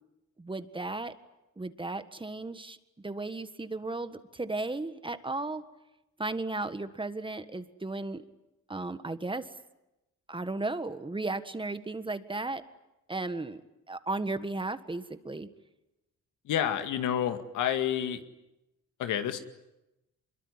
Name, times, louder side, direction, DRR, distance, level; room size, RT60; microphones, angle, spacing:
voice 1, 0.4-1.1 1.6-5.6 6.2-8.2 8.7-9.5 10.3-12.6 13.1-13.6 13.9-15.5, right 2 dB, 15° right, 11 dB, 1.6 m, -35 dB
voice 2, 16.5-18.2 19.0-19.4, left 10 dB, 85° left, 8 dB, 2.1 m, -29 dB
24.5 x 22.5 x 9.6 m, 0.94 s
cardioid pair, 90°, 30 cm